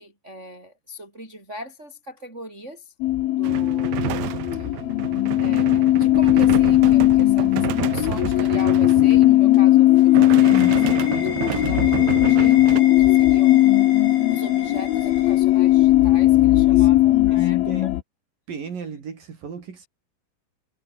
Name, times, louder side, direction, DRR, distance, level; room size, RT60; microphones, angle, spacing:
voice 1, 0.0-2.9 3.2-4.2 4.5-4.7 5.4-13.6 14.3-17.9, equal, 15° right, 6.2 m, -39 dB
sound 1, 3.0-18.0, left 15 dB, 85° left, 2.1 m, -17 dB
sound 2, 3.4-9.6 9.9-12.8, right 17 dB, 85° right, 2.3 m, -30 dB
sound 3, 9.6-16.1, left 5 dB, 65° left, 10.0 m, -36 dB
voice 2, 17.3-17.9 18.5-19.9, right 6 dB, 45° right, 4.6 m, -36 dB
omnidirectional pair, 5.9 m